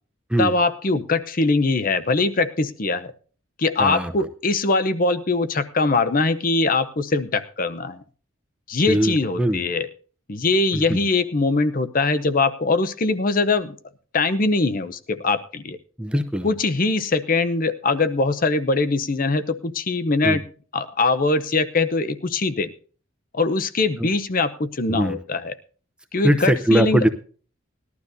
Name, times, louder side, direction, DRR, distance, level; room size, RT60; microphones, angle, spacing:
voice 1, 0.4-3.1 3.6-8.0 8.7-9.9 10.3-13.7 14.1-15.8 16.4-20.4 20.7-22.7 23.3-25.5 26.1-27.0, left 3 dB, 45° left, 11 dB, 0.7 m, -22 dB
voice 2, 3.8-4.1 8.9-9.6 10.7-11.0 16.0-16.5 20.2-20.4 24.0-24.1 24.9-25.2 26.2-27.1, right 1 dB, 5° right, 7 dB, 0.7 m, -21 dB
19.5 x 12.0 x 2.7 m, 0.41 s
head